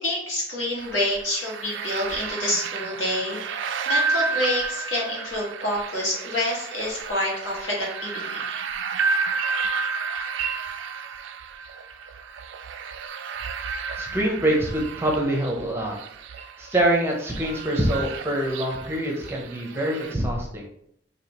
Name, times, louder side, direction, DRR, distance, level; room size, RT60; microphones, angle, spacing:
voice 1, 0.0-3.4 3.8-8.4, left 1 dB, 75° left, -4 dB, 1.6 m, -27 dB
sound 1, 0.8-20.1, right 5 dB, 80° right, 0.3 m, -31 dB
voice 2, 14.0-15.9 16.6-20.7, right 1 dB, 15° right, 0 dB, 0.6 m, -25 dB
4.9 x 2.7 x 2.9 m, 0.69 s
head